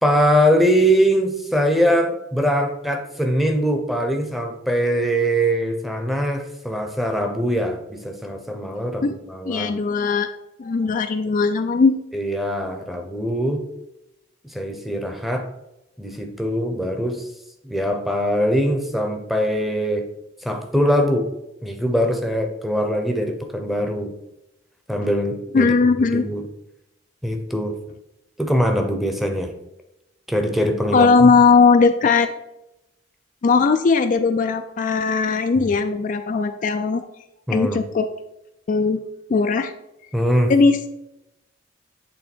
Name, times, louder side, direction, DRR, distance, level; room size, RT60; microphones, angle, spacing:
voice 1, 0.0-9.8 12.1-13.7 14.4-15.5 16.0-17.3 17.6-20.1 20.4-21.3 21.6-24.1 24.9-25.7 26.1-26.4 27.2-27.8 28.4-29.5 30.3-31.3 35.6-35.7 37.5-37.8 40.1-40.5, equal, ahead, 5 dB, 0.7 m, -22 dB
voice 2, 9.5-10.3 10.6-12.0 25.5-26.2 30.9-32.3 33.4-37.1 37.5-38.1 38.7-39.0 39.3-39.7 40.5-40.9, left 4 dB, 45° left, 7 dB, 0.3 m, -18 dB
8.4 x 3.6 x 4.3 m, 0.88 s
head